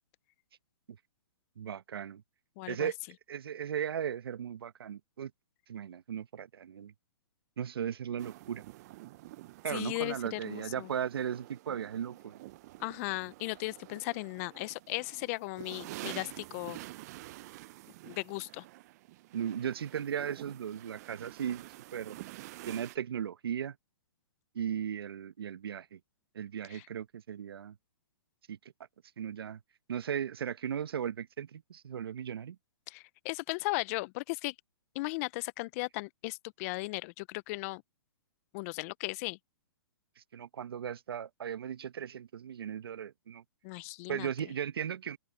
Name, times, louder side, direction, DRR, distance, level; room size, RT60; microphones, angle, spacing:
voice 1, 1.6-2.2 2.7-3.0 3.3-5.3 5.7-6.9 7.6-8.6 9.6-12.4 19.3-21.6 21.9-22.2 22.7-23.7 24.5-26.0 26.3-27.7 28.5-28.6 29.2-29.6 29.9-32.6 40.2-43.4 44.1-45.2, right 8 dB, 70° right, 1.2 m, -36 dB
voice 2, 2.6-2.9 9.7-10.9 12.8-16.8 18.0-18.6 26.7-26.8 32.9-34.5 34.9-37.8 38.5-39.4 43.6-44.3, left 24 dB, 35° left, 0.8 m, -37 dB
sound 1, 8.2-23.0, right 18 dB, 40° right, 0.7 m, -48 dB
open air
hypercardioid pair, 130°, 13 cm